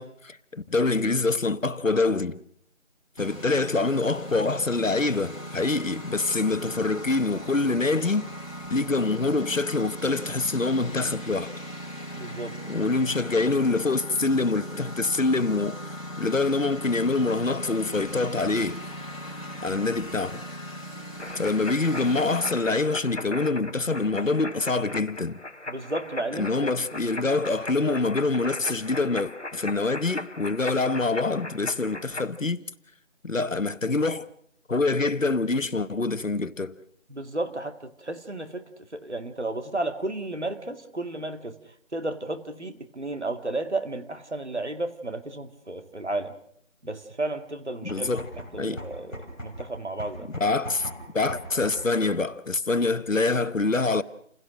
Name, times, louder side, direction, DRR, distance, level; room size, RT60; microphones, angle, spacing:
voice 1, 0.0-2.4 3.2-8.3 8.7-11.5 12.7-18.8 19.6-20.4 21.4-25.4 26.4-32.6 33.2-34.3 34.7-36.8 47.8-48.3 48.6-48.8 50.4-54.0, left 3 dB, 75° left, 1.2 m, -25 dB
Engine, 3.2-22.5, equal, 25° left, 3.8 m, -38 dB
voice 2, 12.1-12.6 25.7-26.6 37.1-38.6 38.9-41.6 41.9-46.3 46.8-48.1 48.5-50.3, right 2 dB, 60° right, 2.1 m, -33 dB
sound 1, 21.2-32.3, left 2 dB, 60° left, 1.6 m, -38 dB
sound 2, 47.8-52.0, equal, 5° left, 3.8 m, -39 dB
29.0 x 16.5 x 6.3 m
figure-of-eight pair, 175°, 39 cm